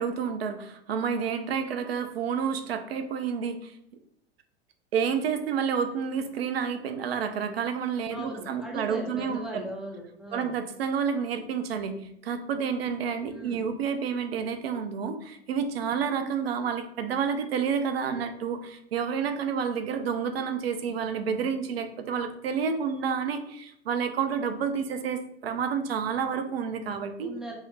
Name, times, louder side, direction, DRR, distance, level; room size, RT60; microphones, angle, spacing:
voice 1, 0.0-3.7 4.9-9.7 10.3-27.3, right 6 dB, 65° right, 8 dB, 0.5 m, -29 dB
voice 2, 8.1-10.5 13.3-13.7 27.2-27.5, right 1 dB, ahead, -1 dB, 0.4 m, -39 dB
3.6 x 2.0 x 3.1 m, 0.76 s
figure-of-eight pair, 90°, 32 cm